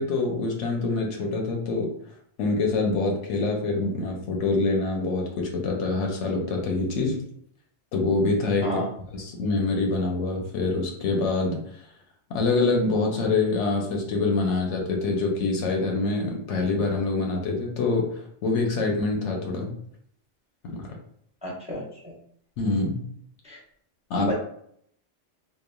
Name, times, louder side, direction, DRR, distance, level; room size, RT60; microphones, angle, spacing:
voice 1, 0.0-1.9 2.4-7.2 7.9-8.8 9.1-11.6 12.3-19.7 20.6-20.9 22.6-23.1 24.1-24.3, left 3 dB, 75° left, 1 dB, 0.9 m, -25 dB
voice 2, 21.4-22.1 23.4-23.6 24.2-24.3, left 1 dB, 5° right, -5 dB, 0.6 m, -31 dB
3.0 x 2.1 x 2.2 m, 0.67 s
omnidirectional pair, 1.3 m